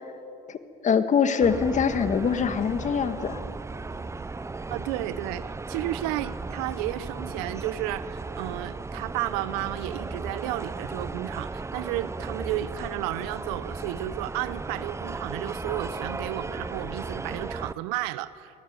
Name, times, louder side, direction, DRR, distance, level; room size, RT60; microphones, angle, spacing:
voice 1, 0.5-3.4, left 6 dB, 40° left, 10 dB, 1.8 m, -24 dB
sound 1, 1.4-17.7, right 3 dB, 15° right, 0.7 m, -36 dB
voice 2, 4.7-18.6, right 15 dB, 85° right, 16 dB, 0.8 m, -32 dB
22.5 x 18.0 x 9.6 m, 2.7 s
supercardioid pair, 85°, 18 cm